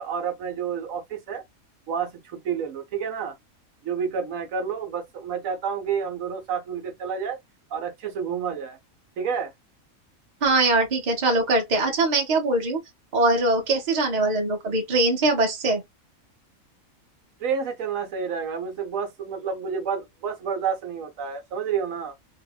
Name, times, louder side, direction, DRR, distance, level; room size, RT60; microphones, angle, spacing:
voice 1, 0.0-1.4 1.9-3.3 3.8-7.4 7.7-8.8 9.2-9.5 17.4-22.2, right 6 dB, 70° right, 1.1 m, -29 dB
voice 2, 10.4-12.8 13.1-15.8, right 2 dB, 40° right, 0.8 m, -22 dB
2.8 x 2.1 x 2.3 m
omnidirectional pair, 1.5 m